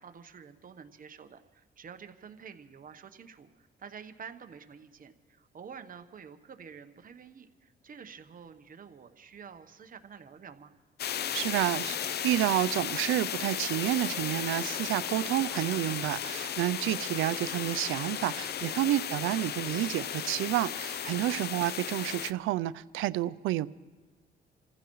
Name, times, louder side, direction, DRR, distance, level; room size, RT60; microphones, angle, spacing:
voice 1, 0.0-10.7 18.8-18.9 21.2-21.4, right 6 dB, 45° right, 1.0 m, -49 dB
sound 1, 11.0-22.3, left 9 dB, 55° left, 0.6 m, -35 dB
voice 2, 11.3-23.7, right 15 dB, 90° right, 0.4 m, -30 dB
28.5 x 15.0 x 3.1 m
cardioid pair, 90°, 20 cm